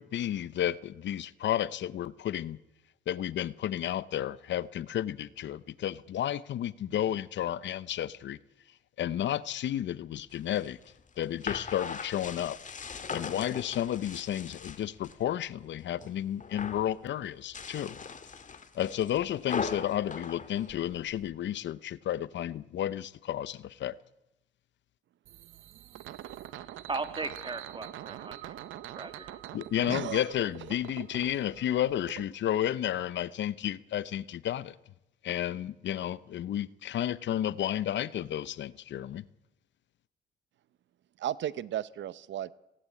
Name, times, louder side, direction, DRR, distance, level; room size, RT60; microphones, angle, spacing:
voice 1, 0.0-2.6 3.1-8.4 9.0-10.8 11.2-12.6 13.1-18.0 18.7-23.9 29.5-34.7 35.2-39.2, left 11 dB, 65° left, 0.8 m, -32 dB
sound 1, 10.3-15.2 15.6-16.1 16.4-16.9 17.4-21.3, left 5 dB, 40° left, 1.9 m, -40 dB
sound 2, 25.3-32.2, right 13 dB, 85° right, 1.1 m, -45 dB
voice 2, 26.9-28.6 29.0-29.4, right 3 dB, 25° right, 2.1 m, -37 dB
voice 3, 29.9-30.2 41.2-42.5, right 11 dB, 70° right, 0.8 m, -34 dB
18.0 x 17.5 x 8.5 m
cardioid pair, 90°, 20 cm